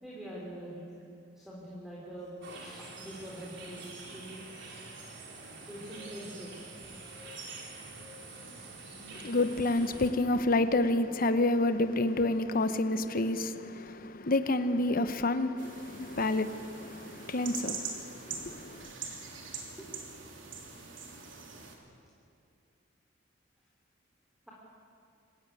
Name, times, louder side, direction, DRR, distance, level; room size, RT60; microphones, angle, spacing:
voice 1, 0.0-0.8 1.3-4.5 5.7-6.6 8.3-8.6 19.8-20.0, equal, ahead, 3.9 m, -44 dB
sound 1, 2.4-10.1, right 3 dB, 65° right, 3.8 m, -46 dB
voice 2, 9.1-18.9, left 2 dB, 50° left, 1.0 m, -29 dB
sound 2, 15.6-21.8, right 5 dB, 85° right, 3.2 m, -43 dB
26.5 x 15.5 x 9.4 m
head